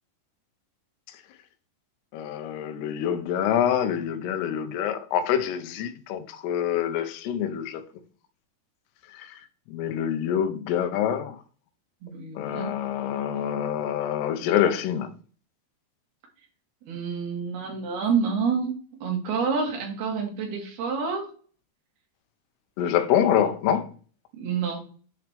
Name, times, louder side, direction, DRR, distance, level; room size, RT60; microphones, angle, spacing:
voice 1, 2.1-7.8 9.1-11.4 12.4-15.1 22.8-23.9, left 9 dB, 75° left, 2.7 m, -26 dB
voice 2, 12.0-12.7 16.9-18.7 19.0-21.3 24.3-24.8, right 5 dB, 65° right, 3.9 m, -28 dB
9.4 x 6.3 x 3.4 m
omnidirectional pair, 4.9 m